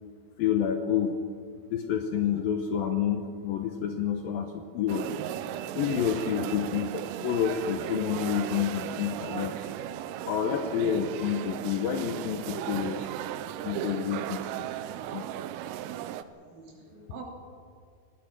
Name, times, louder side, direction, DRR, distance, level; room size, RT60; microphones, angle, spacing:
voice 1, 0.4-1.2 1.7-5.1 5.8-9.6 10.3-13.1 13.6-14.7 15.1-15.3, left 8 dB, 85° left, 5 dB, 2.0 m, -29 dB
sound 1, 4.9-16.2, right 11 dB, 85° right, 3.4 m, -36 dB
voice 2, 15.2-16.2 16.5-17.2, right 3 dB, 65° right, 1 dB, 5.2 m, -45 dB
26.0 x 18.5 x 6.0 m, 2.1 s
omnidirectional pair, 5.7 m